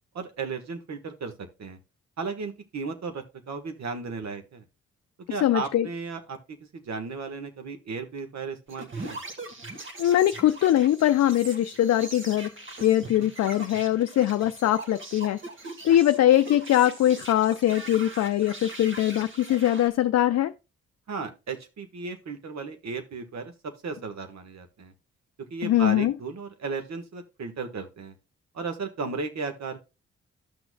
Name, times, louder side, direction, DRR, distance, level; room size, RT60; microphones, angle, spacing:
voice 1, 0.1-1.8 2.2-4.6 5.3-6.4 6.7-9.2 21.1-23.5 23.8-24.9 25.5-28.1 28.5-29.8, right 4 dB, 65° right, 1.4 m, -35 dB
voice 2, 5.4-5.9 10.0-12.5 12.8-15.4 15.8-20.5 25.6-26.1, left 12 dB, 60° left, 0.5 m, -22 dB
sound 1, 8.7-19.9, right 2 dB, 40° right, 2.0 m, -41 dB
12.5 x 6.1 x 2.2 m
supercardioid pair, 45°, 30 cm